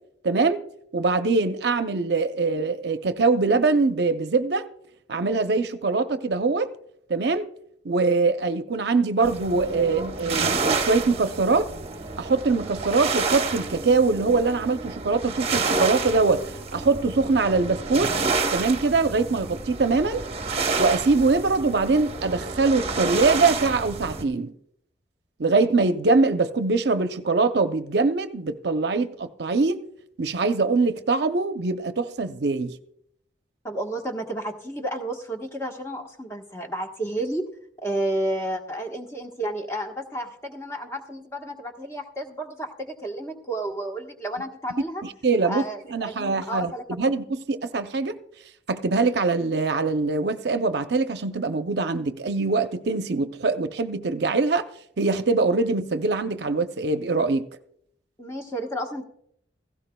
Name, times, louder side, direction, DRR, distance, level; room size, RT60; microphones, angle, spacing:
voice 1, 0.2-0.6 0.9-4.7 5.1-6.7 7.1-7.5 7.8-11.7 12.2-16.4 16.7-18.1 18.5-20.2 20.8-24.5 25.4-29.8 30.2-32.8 45.0-45.6 45.9-46.7 47.0-48.2 48.7-54.7 55.0-57.5, right 3 dB, 65° right, 0.6 m, -23 dB
sound 1, 9.2-24.2, right 4 dB, 35° right, 0.9 m, -29 dB
voice 2, 33.6-37.4 37.8-45.0 45.4-46.8 58.2-59.0, right 1 dB, 15° left, 1.2 m, -31 dB
16.5 x 15.5 x 2.3 m
head